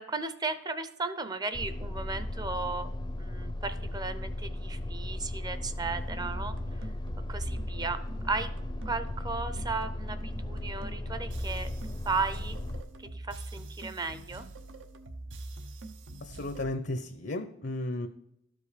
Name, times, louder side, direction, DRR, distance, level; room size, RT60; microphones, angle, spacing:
voice 1, 0.0-2.9 3.2-6.9 7.3-8.5 8.8-11.7 12.1-12.6 13.1-14.4, right 3 dB, 20° right, 12 dB, 0.6 m, -35 dB
sound 1, 1.5-12.8, left 1 dB, 25° left, 0.5 m, -36 dB
sound 2, 5.7-16.7, right 2 dB, 80° right, 0.9 m, -44 dB
voice 2, 16.2-18.1, left 1 dB, 60° left, 8 dB, 0.7 m, -34 dB
12.5 x 5.3 x 5.0 m, 0.78 s
head